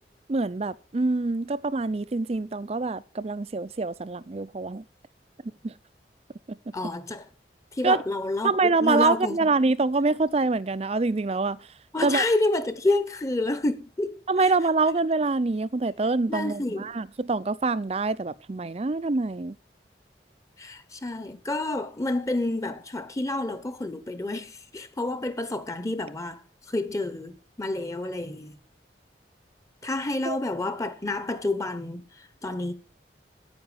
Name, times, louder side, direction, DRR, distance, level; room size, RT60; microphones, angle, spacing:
voice 1, 0.3-4.8 5.6-5.7 6.5-6.6 7.8-8.0 8.4-11.7 12.0-12.2 14.3-19.6 30.2-30.4, right 3 dB, 35° right, 0.5 m, -25 dB
voice 2, 6.7-7.3 7.7-9.5 11.9-14.2 16.3-16.9 20.6-26.4 26.7-28.6 29.8-32.7, left 2 dB, 20° left, 1.0 m, -29 dB
9.7 x 9.0 x 6.9 m
head